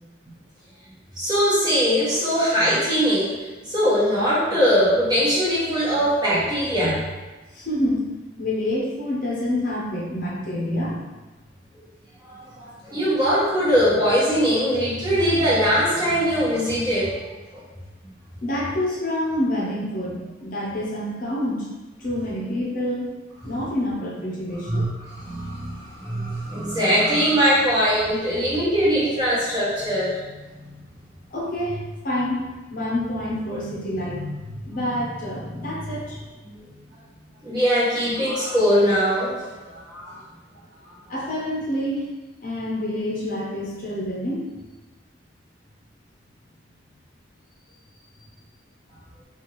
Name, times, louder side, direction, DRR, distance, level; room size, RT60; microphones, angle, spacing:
voice 1, 1.2-3.3 3.6-7.0 12.2-17.1 17.5-17.6 24.6-30.2 36.5-36.6 37.4-40.2, equal, 20° right, -10 dB, 1.3 m, -21 dB
voice 2, 7.5-8.0 8.4-11.1 18.4-21.7 22.0-23.2 23.4-24.9 30.2-30.8 31.3-32.4 32.7-36.3 41.1-42.1 42.4-44.5, left 1 dB, 45° left, -5 dB, 0.7 m, -27 dB
4.2 x 2.5 x 3.0 m, 1.2 s
head